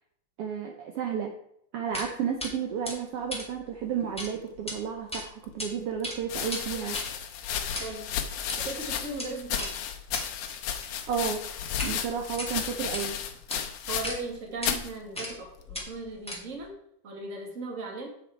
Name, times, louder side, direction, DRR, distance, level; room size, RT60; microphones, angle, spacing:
voice 1, 0.4-1.3 1.7-7.0 11.1-11.4 11.8-13.2, right 7 dB, 75° right, 3 dB, 1.4 m, -32 dB
sound 1, 1.9-2.1 2.4-2.5 2.8-4.3 4.6-4.7 5.1-5.7 5.9-11.9 12.3-13.1 13.5-13.6 14.0-14.2 14.6-14.7 15.1-15.4 15.7-16.7, left 1 dB, 5° left, 1.0 m, -37 dB
sound 2, 5.2-5.3 6.2-14.3 14.6-14.9 15.7-16.1, left 9 dB, 75° left, 2.2 m, -33 dB
sound 3, 8.6-9.1 9.5-9.6 10.0-10.5 11.7-12.9 13.2-13.3 13.6-13.9, left 5 dB, 50° left, 2.2 m, -49 dB
voice 2, 8.6-9.7 13.9-16.7 17.0-18.1, right 3 dB, 30° right, 1 dB, 1.6 m, -37 dB
7.9 x 7.0 x 4.5 m, 0.71 s
omnidirectional pair, 3.7 m